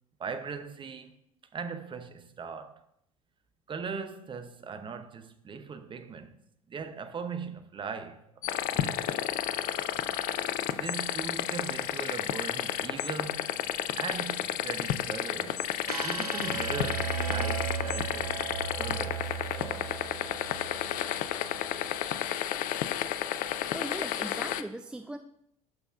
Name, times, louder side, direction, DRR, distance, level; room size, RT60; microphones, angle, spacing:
voice 1, 0.2-1.1 1.5-2.9 3.7-6.4 6.7-9.4 10.8-13.5 13.9-15.7 16.0-19.9, right 5 dB, 25° right, 0.8 m, -39 dB
sound 1, 8.4-24.6, left 11 dB, 45° left, 0.5 m, -32 dB
sound 2, 15.9-21.9, right 6 dB, 85° right, 0.5 m, -36 dB
voice 2, 23.7-25.2, right 1 dB, 5° right, 0.4 m, -39 dB
12.0 x 5.2 x 2.5 m
figure-of-eight pair, 65°, 19 cm